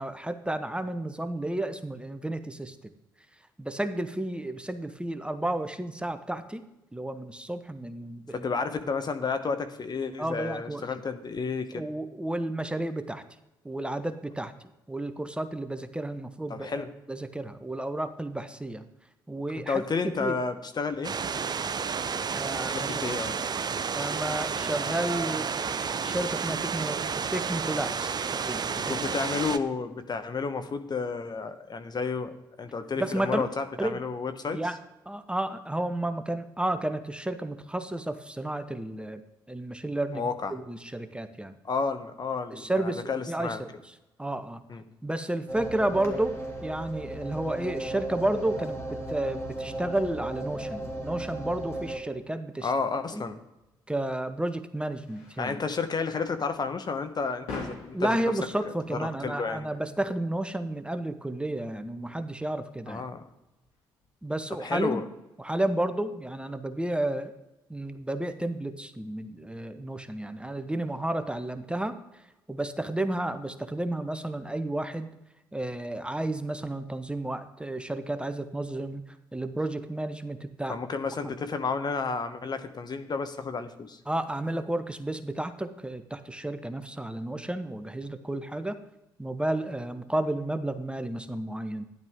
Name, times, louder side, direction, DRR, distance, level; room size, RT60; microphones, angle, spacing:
voice 1, 0.0-2.7 3.6-6.6 6.9-8.5 10.2-10.9 11.7-13.2 13.6-14.5 14.9-18.8 19.3-20.4 22.3-22.9 23.9-27.0 27.3-28.2 28.4-29.0 33.0-33.4 33.8-34.0 34.5-34.8 35.1-39.2 39.5-40.2 40.5-41.5 42.5-43.7 44.2-44.6 45.0-52.7 53.1-53.2 53.9-55.6 57.9-63.0 64.2-65.0 65.4-67.3 67.7-72.0 72.5-75.1 75.5-79.0 79.3-80.8 81.2-81.3 84.1-88.8 89.2-91.8, right 1 dB, 10° right, 10 dB, 1.0 m, -32 dB
voice 2, 8.3-11.9 16.5-16.9 19.6-21.2 22.7-23.4 28.7-34.6 40.1-40.5 41.6-43.6 44.7-44.8 52.6-53.4 55.4-58.2 58.9-59.7 62.9-63.3 64.6-65.0 80.7-84.0, left 4 dB, 40° left, 9 dB, 1.0 m, -31 dB
sound 1, 21.0-29.6, right 6 dB, 35° right, 0.7 m, -31 dB
sound 2, 45.5-52.0, right 1 dB, 25° left, 2.6 m, -36 dB
sound 3, 53.6-64.9, left 3 dB, 75° left, 3.5 m, -48 dB
12.0 x 10.5 x 3.6 m, 0.96 s
hypercardioid pair, 45°, 11 cm